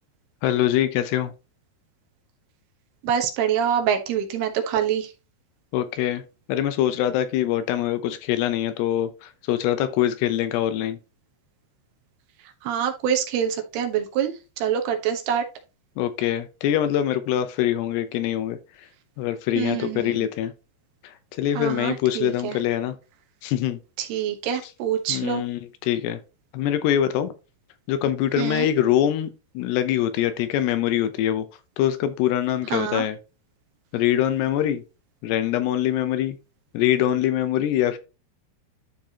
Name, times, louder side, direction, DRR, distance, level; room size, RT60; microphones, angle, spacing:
voice 1, 0.4-1.3 5.7-6.2 6.5-9.1 9.5-11.0 16.0-18.6 19.2-20.5 21.4-23.0 23.4-23.8 25.1-26.2 26.5-27.3 27.9-29.3 29.5-31.4 31.8-33.2 33.9-34.8 35.2-36.4 36.7-38.0, left 11 dB, 75° left, 2.8 m, -23 dB
voice 2, 3.0-5.1 12.6-14.3 14.6-15.4 19.6-20.3 21.6-22.6 24.0-25.4 28.4-28.7 32.7-33.0, right 9 dB, 70° right, 3.0 m, -25 dB
12.0 x 4.6 x 2.9 m
omnidirectional pair, 5.1 m